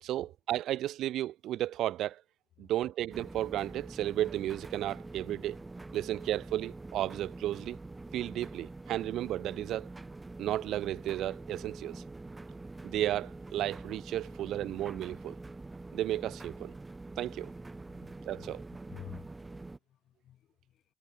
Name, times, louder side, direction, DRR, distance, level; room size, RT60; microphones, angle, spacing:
voice 1, 0.0-2.2 2.6-5.6 5.9-7.8 8.1-9.9 10.4-12.0 12.8-15.4 15.9-16.7 17.2-17.5 18.3-18.6, right 13 dB, 80° right, 0.4 m, -33 dB
sound 1, 3.1-19.8, right 2 dB, 20° right, 1.1 m, -45 dB
voice 2, 17.9-18.6 18.9-19.5 19.9-20.8, left 11 dB, 75° left, 3.6 m, -51 dB
cardioid pair, 90°, 0 cm